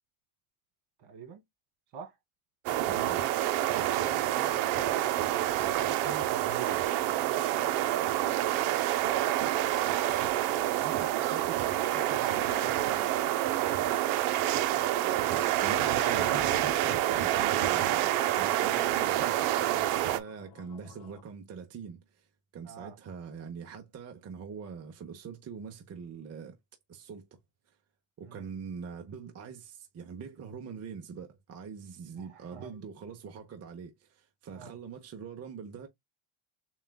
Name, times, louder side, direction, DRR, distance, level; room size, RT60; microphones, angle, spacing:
voice 1, 1.0-1.4 1.9-2.1 3.8-5.1 5.6-8.4 10.6-13.2 22.6-23.0 28.2-28.4 32.2-32.7 34.5-34.7, right 6 dB, 60° right, 2.0 m, -45 dB
sound 1, 2.7-20.2, right 13 dB, 75° right, 0.8 m, -28 dB
voice 2, 2.9-3.2 15.6-22.3 22.5-26.6 26.9-27.3 28.2-35.9, right 6 dB, 30° right, 0.8 m, -43 dB
sound 2, 15.2-21.2, left 8 dB, 50° left, 1.0 m, -50 dB
7.1 x 2.4 x 2.2 m
cardioid pair, 130°, 49 cm